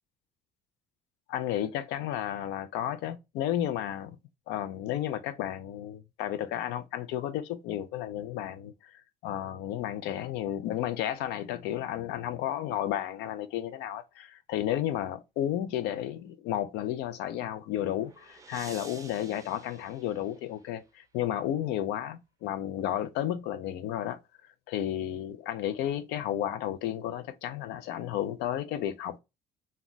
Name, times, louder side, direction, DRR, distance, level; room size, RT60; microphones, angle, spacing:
voice 1, 1.3-4.2 4.5-24.2 24.7-29.2, left 11 dB, 90° left, 0.4 m, -32 dB
sound 1, 17.6-20.8, right 4 dB, 20° right, 0.4 m, -51 dB
2.3 x 2.1 x 3.8 m
cardioid pair, 110°, 17 cm